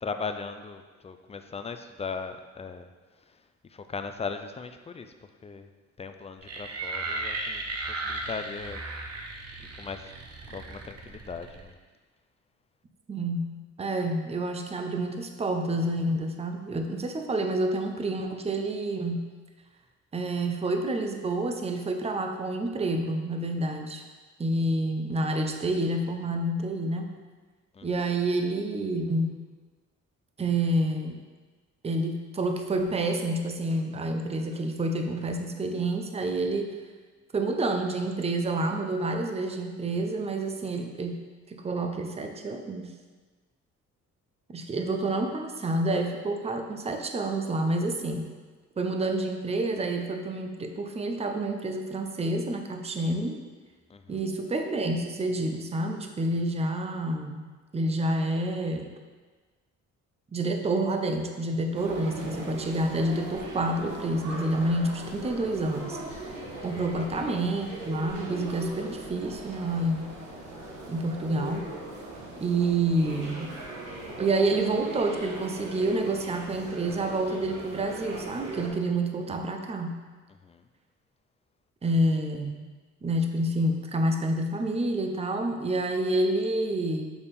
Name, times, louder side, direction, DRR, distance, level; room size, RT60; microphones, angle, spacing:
voice 1, 0.0-2.9 3.7-5.1 5.4-5.7 6.0-7.6 8.0-8.8 9.6-10.1 10.5-11.7 27.7-27.9 53.9-54.2 66.3-66.6 67.0-67.1 80.4-80.6, left 5 dB, 20° left, 8 dB, 0.4 m, -38 dB
sound 1, 6.4-11.7, right 3 dB, 55° right, 0.9 m, -36 dB
voice 2, 13.1-19.3 20.1-24.0 24.4-27.1 27.8-29.4 30.4-31.2 31.8-36.7 37.3-41.2 41.5-42.9 44.5-48.3 48.8-53.4 54.1-57.5 57.7-58.9 60.3-70.1 70.9-71.7 72.4-73.5 74.2-80.0 81.8-82.6 83.0-87.1, right 1 dB, 20° right, 4 dB, 0.6 m, -28 dB
sound 2, 61.7-78.7, right 1 dB, 70° right, 1.3 m, -39 dB
7.0 x 3.5 x 4.2 m, 1.4 s
cardioid pair, 90°, 30 cm